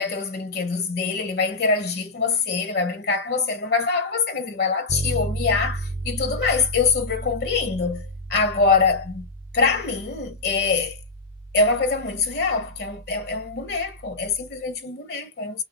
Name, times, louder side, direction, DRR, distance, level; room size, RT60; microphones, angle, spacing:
voice 1, 0.0-9.3 9.5-11.0 11.5-15.6, left 4 dB, 60° left, 0.8 m, -24 dB
Bass guitar, 4.9-14.6, right 2 dB, 40° right, 0.7 m, -34 dB
3.1 x 2.6 x 3.7 m
head